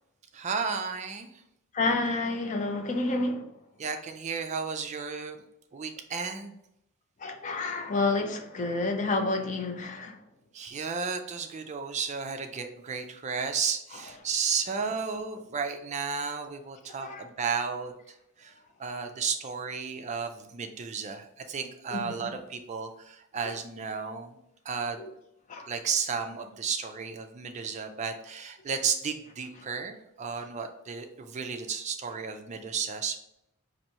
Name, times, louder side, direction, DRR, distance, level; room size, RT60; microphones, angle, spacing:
voice 1, 0.3-1.4 3.8-5.4 5.7-6.6 10.5-24.4 24.6-25.0 25.7-33.2, right 6 dB, 30° right, 6 dB, 0.4 m, -33 dB
voice 2, 1.7-3.5 7.2-10.2 17.0-17.3 21.9-22.3 23.5-23.6 25.0-25.1 25.5-25.7, left 3 dB, 35° left, 4 dB, 0.5 m, -29 dB
4.4 x 2.6 x 2.8 m, 0.79 s
head